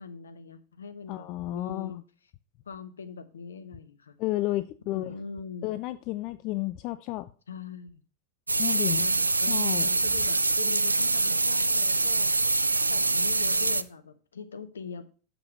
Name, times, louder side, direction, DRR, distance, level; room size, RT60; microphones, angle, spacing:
voice 1, 0.0-2.0 2.7-4.2 4.9-5.7 7.5-8.0 8.7-12.3 12.8-15.0, left 5 dB, 70° left, 0.8 m, -41 dB
voice 2, 1.1-2.0 4.2-5.1 5.6-7.3 8.6-9.1 9.5-9.9, left 17 dB, 40° left, 0.3 m, -32 dB
sound 1, 8.5-13.8, right 3 dB, 80° right, 0.3 m, -25 dB
6.9 x 6.0 x 5.4 m
figure-of-eight pair, 90°, 0 cm